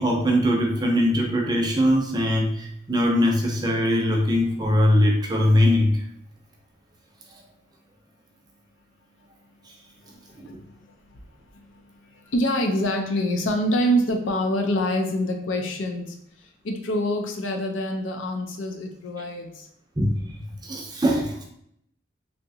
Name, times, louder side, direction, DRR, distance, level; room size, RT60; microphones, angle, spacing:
voice 1, 0.0-6.0 10.4-10.6 20.0-20.1 20.6-21.4, left 1 dB, 20° right, 0 dB, 0.5 m, -21 dB
voice 2, 12.3-16.1 16.6-19.6, equal, 85° left, 3 dB, 0.5 m, -25 dB
3.2 x 2.7 x 2.6 m, 0.70 s
head